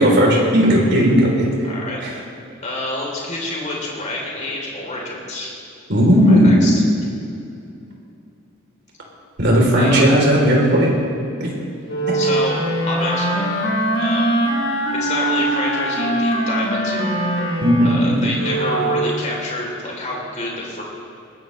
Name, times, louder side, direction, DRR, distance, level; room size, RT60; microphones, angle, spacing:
voice 1, 0.0-1.5 2.0-2.1 5.9-6.6 9.4-10.9 11.4-11.5 17.6-18.1, equal, 60° right, -2 dB, 3.5 m, -15 dB
voice 2, 1.6-2.0 2.6-5.5 6.2-6.8 9.7-10.1 12.1-12.6 12.9-13.5 14.0-14.3 14.9-17.1 17.8-20.8, left 2 dB, 35° left, -2 dB, 3.5 m, -28 dB
Wind instrument woodwind instrument, 11.9-19.2, right 1 dB, 80° left, 3.6 m, -21 dB
21.0 x 16.0 x 3.3 m, 2.5 s
head